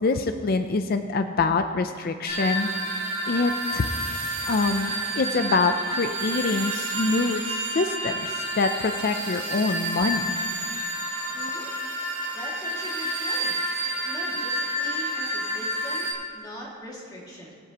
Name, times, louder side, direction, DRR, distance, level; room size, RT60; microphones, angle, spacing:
voice 1, 0.0-3.9 4.5-10.3, left 3 dB, 45° left, 8 dB, 0.4 m, -25 dB
sound 1, 2.3-16.1, right 1 dB, 30° right, 3.3 m, -29 dB
voice 2, 11.3-11.7 12.3-13.6 14.0-17.6, equal, 20° left, -4 dB, 2.2 m, -41 dB
24.0 x 8.0 x 3.0 m, 2.1 s
head